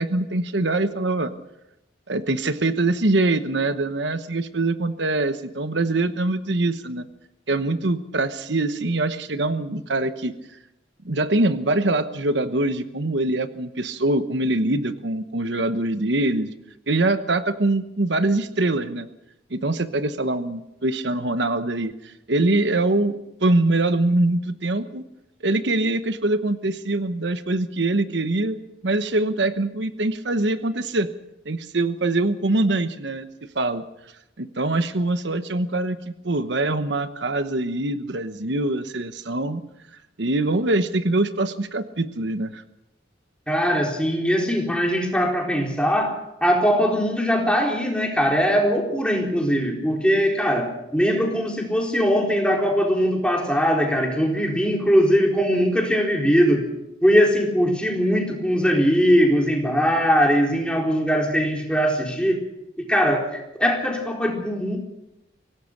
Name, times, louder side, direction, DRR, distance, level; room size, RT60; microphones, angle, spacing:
voice 1, 0.0-1.3 2.1-7.1 7.5-10.3 11.0-16.5 16.9-19.1 19.5-23.1 23.4-25.0 25.4-28.6 28.8-31.1 31.4-33.3 33.5-33.8 34.4-39.6 40.2-42.6, right 2 dB, 75° right, 10 dB, 1.1 m, -23 dB
voice 2, 43.5-56.7 57.0-62.4 62.9-64.8, equal, 5° left, 0 dB, 4.0 m, -21 dB
24.5 x 17.5 x 6.6 m, 0.89 s
head